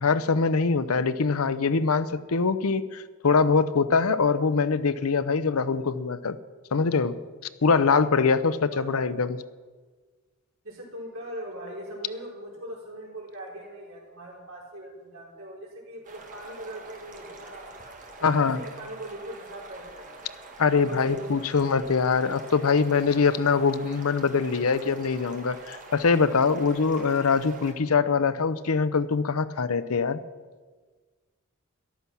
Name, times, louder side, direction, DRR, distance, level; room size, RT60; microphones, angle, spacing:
voice 1, 0.0-6.4 6.7-7.2 7.6-9.4 18.2-18.6 20.6-30.2, left 5 dB, 90° left, 14 dB, 0.7 m, -23 dB
voice 2, 8.7-9.1 10.6-17.7 18.2-20.2 20.7-21.5, right 1 dB, 80° right, -4 dB, 4.7 m, -41 dB
sound 1, 16.0-27.7, right 3 dB, 35° right, 1.7 m, -45 dB
14.0 x 11.5 x 6.0 m, 1.4 s
head